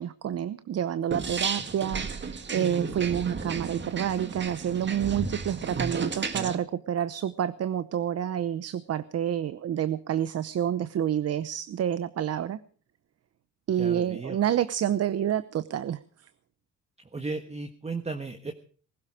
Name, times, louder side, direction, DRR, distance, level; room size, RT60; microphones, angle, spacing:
voice 1, 0.0-12.6 13.7-16.0, right 10 dB, 55° right, 15 dB, 0.8 m, -28 dB
sound 1, 1.1-6.6, right 4 dB, 35° right, 1.9 m, -33 dB
voice 2, 6.1-6.6 13.7-14.4 17.1-18.5, right 3 dB, 20° right, 7 dB, 1.5 m, -35 dB
20.5 x 12.0 x 5.0 m, 0.43 s
cardioid pair, 90°, 30 cm